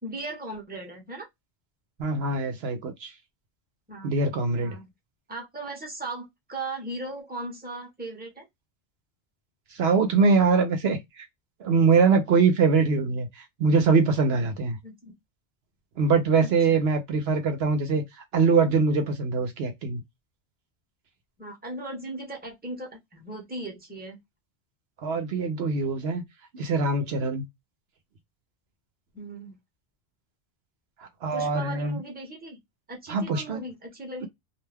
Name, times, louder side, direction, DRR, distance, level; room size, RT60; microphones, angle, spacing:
voice 1, 0.0-1.3 3.9-4.1 4.6-4.9 5.3-8.5 14.8-15.1 16.4-16.8 21.4-24.2 29.1-29.6 31.3-32.6 32.9-34.3, right 2 dB, 10° right, 0.8 m, -37 dB
voice 2, 2.0-3.1 4.0-4.7 9.7-11.3 11.6-14.8 16.0-20.0 25.0-26.2 26.5-27.5 31.0-32.0 33.1-33.7, right 4 dB, 70° right, 0.9 m, -23 dB
2.5 x 2.2 x 3.2 m
omnidirectional pair, 1.1 m